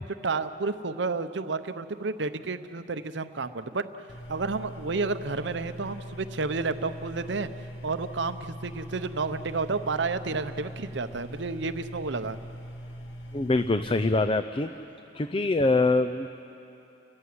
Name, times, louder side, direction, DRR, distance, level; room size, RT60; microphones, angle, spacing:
voice 1, 0.2-3.9 4.3-7.5 7.8-12.4, right 4 dB, 65° right, 11 dB, 0.8 m, -31 dB
sound 1, 4.1-14.2, equal, 85° left, 1.8 m, -41 dB
voice 2, 13.3-14.7 15.1-16.3, left 2 dB, 30° left, 10 dB, 0.5 m, -24 dB
29.5 x 14.5 x 9.6 m, 2.9 s
head